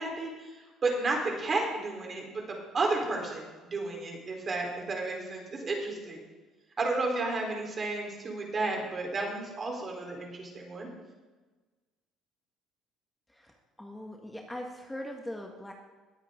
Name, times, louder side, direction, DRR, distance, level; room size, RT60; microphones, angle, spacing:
voice 1, 0.0-6.2 6.8-10.9, right 3 dB, 40° right, 1 dB, 3.9 m, -32 dB
voice 2, 13.3-15.7, left 1 dB, 10° left, 2 dB, 1.7 m, -41 dB
19.0 x 8.2 x 3.8 m, 1.3 s
hypercardioid pair, 70°, 0 cm